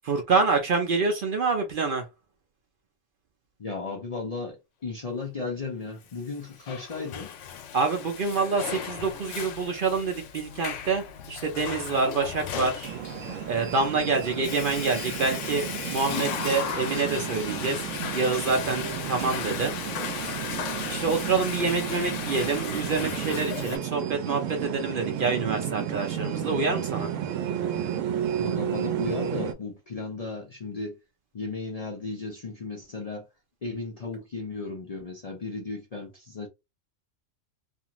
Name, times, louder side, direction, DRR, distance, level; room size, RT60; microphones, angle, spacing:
voice 1, 0.0-2.0 7.7-12.9 13.5-17.9 18.1-19.7 20.9-27.1, right 4 dB, 55° right, 0.6 m, -27 dB
voice 2, 3.6-7.3 28.4-31.0 31.3-33.3 33.6-36.5, left 3 dB, 45° left, 0.5 m, -35 dB
Water / Toilet flush, 6.3-23.8, left 8 dB, 80° left, 0.9 m, -36 dB
sound 1, 12.8-29.5, right 9 dB, 85° right, 0.9 m, -32 dB
2.5 x 2.4 x 2.9 m
omnidirectional pair, 1.3 m